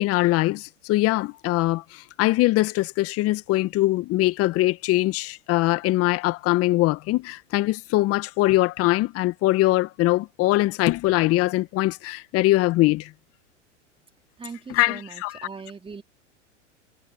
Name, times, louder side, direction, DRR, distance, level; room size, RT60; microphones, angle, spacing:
voice 1, 0.0-13.1 14.7-15.5, left 18 dB, 40° left, 1.8 m, -22 dB
voice 2, 14.4-16.0, right 5 dB, 15° right, 2.5 m, -40 dB
hypercardioid pair, 100°, 37 cm